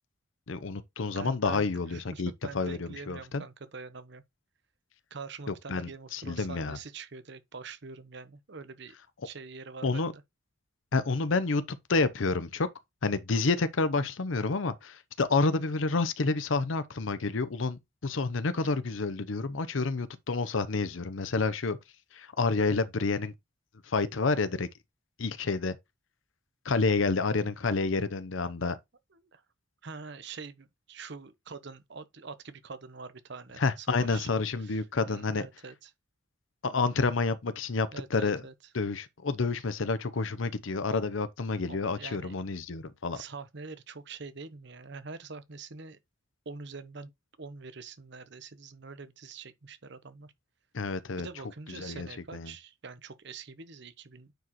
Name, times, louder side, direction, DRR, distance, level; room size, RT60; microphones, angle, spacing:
voice 1, 0.5-3.4 5.5-6.8 9.8-10.1 10.9-12.7 13.0-21.8 22.1-23.3 23.9-24.7 25.2-25.8 26.6-28.8 33.6-35.5 36.6-38.4 38.7-43.2 50.7-51.3 51.8-52.1 52.3-52.5, left 3 dB, 75° left, 0.7 m, -29 dB
voice 2, 1.1-4.2 5.1-8.9 9.2-10.2 29.1-29.4 29.8-34.3 34.6-35.9 37.9-38.5 41.7-42.3 43.1-46.0 46.4-47.1 47.4-50.3 51.2-54.3, right 4 dB, 60° right, 0.9 m, -45 dB
9.1 x 4.9 x 3.0 m
head